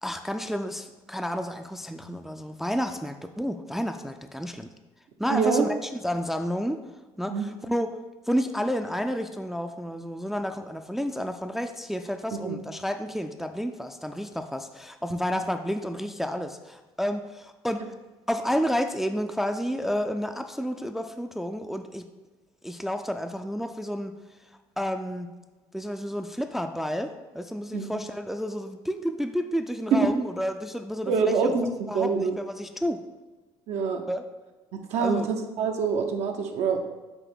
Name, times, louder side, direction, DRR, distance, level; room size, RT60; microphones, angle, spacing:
voice 1, 0.0-4.7 5.2-6.8 7.2-7.9 8.3-17.9 18.3-22.1 22.6-24.1 24.8-25.3 25.7-31.5 31.9-33.0 34.1-34.2 35.0-35.3, equal, ahead, 6 dB, 0.3 m, -30 dB
voice 2, 5.3-5.7 7.3-7.5 12.4-12.6 27.7-28.0 29.9-30.1 31.1-31.7 31.9-32.4 33.7-34.0 34.9-36.9, right 5 dB, 65° right, 3 dB, 0.5 m, -25 dB
6.0 x 2.5 x 3.5 m, 1.2 s
supercardioid pair, 65°, 12 cm